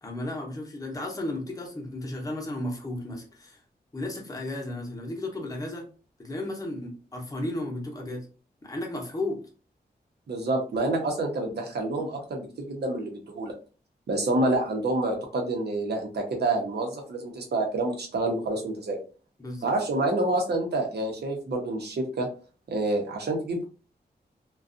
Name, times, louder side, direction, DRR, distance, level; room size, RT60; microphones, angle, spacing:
voice 1, 0.0-3.6 3.9-5.8 6.2-8.3 8.6-9.4 19.4-19.8, left 1 dB, 20° left, -1 dB, 0.7 m, -34 dB
voice 2, 10.3-13.5 14.1-19.0 19.6-22.3 22.7-23.7, right 2 dB, 85° right, 1 dB, 0.8 m, -28 dB
2.5 x 2.3 x 2.5 m, 0.36 s
wide cardioid pair, 95°, 17 cm